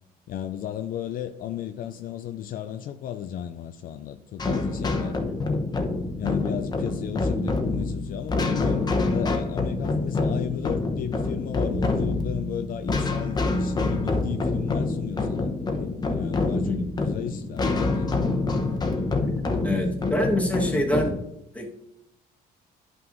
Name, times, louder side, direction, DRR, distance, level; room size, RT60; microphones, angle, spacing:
voice 1, 0.3-5.2 6.2-15.5 15.8-18.1 21.0-21.2, left 10 dB, 55° left, 0.4 m, -34 dB
sound 1, 4.4-21.1, left 3 dB, 25° left, 0.9 m, -26 dB
voice 2, 19.6-21.2 21.5-21.7, equal, 10° left, 1.4 m, -25 dB
11.0 x 5.6 x 2.6 m
cardioid pair, 110°, 17 cm